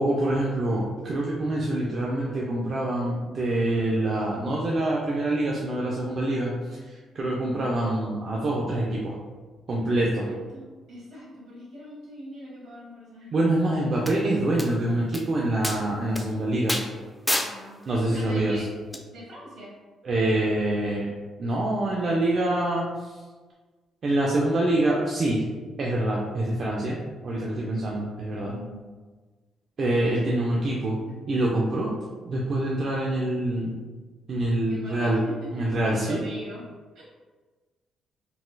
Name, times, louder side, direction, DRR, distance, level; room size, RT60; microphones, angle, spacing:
voice 1, 0.0-9.2 9.7-10.3 13.3-16.8 17.9-18.5 20.0-21.1 21.4-23.2 24.0-25.4 25.8-27.0 27.2-28.5 29.8-31.0 31.3-31.9 32.2-33.7 34.3-35.2 35.5-36.2, right 1 dB, 50° right, -4 dB, 0.5 m, -25 dB
voice 2, 10.0-13.4 17.3-18.7 19.1-19.7 28.5-28.9 34.6-35.5 35.9-36.6 36.9-37.0, equal, 70° right, -6 dB, 1.4 m, -42 dB
sound 1, 14.1-14.2 14.6-14.7 15.1-15.2 15.6-15.8 16.1-16.2 16.7-16.9 17.3-17.5 18.9-19.0, left 1 dB, 5° left, 0.4 m, -27 dB
4.0 x 2.4 x 2.2 m, 1.3 s
cardioid pair, 90°, 0 cm